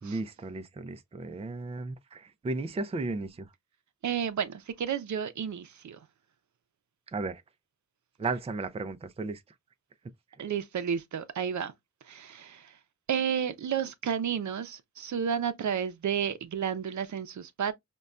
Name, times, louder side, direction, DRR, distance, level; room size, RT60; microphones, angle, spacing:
voice 1, 0.0-3.5 7.1-7.4 8.2-9.4, right 3 dB, 20° right, 0.4 m, -34 dB
voice 2, 4.0-6.0 10.4-11.7 12.1-12.8 13.1-17.7, right 8 dB, 75° right, 0.5 m, -31 dB
5.2 x 2.2 x 2.3 m
wide cardioid pair, 110°, 30 cm